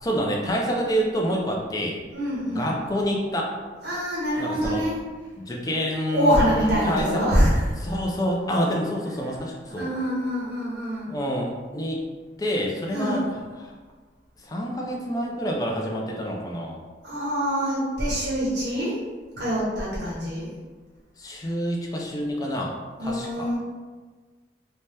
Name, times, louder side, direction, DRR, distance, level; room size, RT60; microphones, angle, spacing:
voice 1, 0.0-2.0 2.5-3.5 4.4-4.8 5.4-7.2 7.8-9.9 11.1-12.0 12.4-13.2 13.6-13.7 14.4-16.8 21.2-23.5, equal, 20° left, -1 dB, 0.4 m, -27 dB
voice 2, 2.1-2.7 3.8-4.9 6.1-7.6 9.7-11.2 12.9-13.2 17.0-19.0 19.4-20.5 23.0-23.6, equal, 75° right, -6 dB, 0.7 m, -24 dB
2.7 x 2.2 x 3.3 m, 1.4 s
head